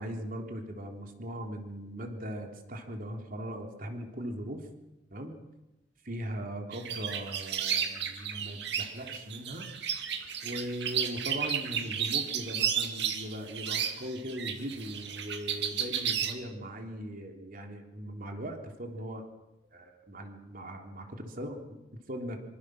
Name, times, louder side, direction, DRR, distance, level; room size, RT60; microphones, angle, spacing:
voice 1, 0.0-4.7 5.1-5.4 6.0-9.7 10.4-19.3 19.7-22.4, equal, 50° right, 3 dB, 3.5 m, -39 dB
sound 1, 6.7-16.3, right 8 dB, 65° right, 2.3 m, -33 dB
25.5 x 25.0 x 6.5 m, 1.0 s
head